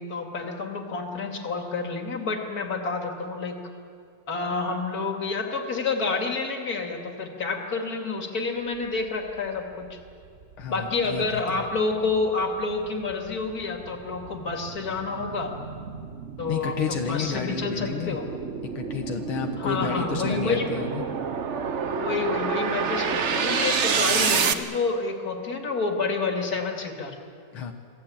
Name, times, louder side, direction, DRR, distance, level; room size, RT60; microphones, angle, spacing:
voice 1, 0.0-3.6 4.3-10.0 10.7-15.5 16.4-18.2 19.6-20.9 21.8-27.2, left 4 dB, 45° left, 2 dB, 2.9 m, -29 dB
sound 1, 9.8-9.9 10.4-24.5, right 6 dB, 45° right, 1.0 m, -29 dB
voice 2, 10.6-11.6 16.5-18.2 18.8-21.0 27.5-27.7, left 6 dB, 80° left, 4 dB, 2.1 m, -31 dB
26.5 x 17.5 x 8.8 m, 2.3 s
omnidirectional pair, 2.3 m